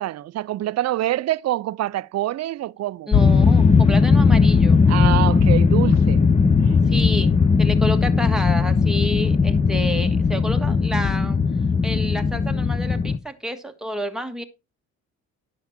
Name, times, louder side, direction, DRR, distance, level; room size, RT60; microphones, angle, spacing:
voice 1, 0.0-3.1 4.9-6.2, right 14 dB, 60° right, 0.5 m, -25 dB
sound 1, 3.1-13.2, left 5 dB, 20° left, 0.7 m, -18 dB
voice 2, 3.1-4.8 6.9-7.3 7.6-11.4 11.8-14.4, equal, ahead, 1.5 m, -30 dB
11.5 x 5.7 x 4.4 m
cardioid pair, 90°, 30 cm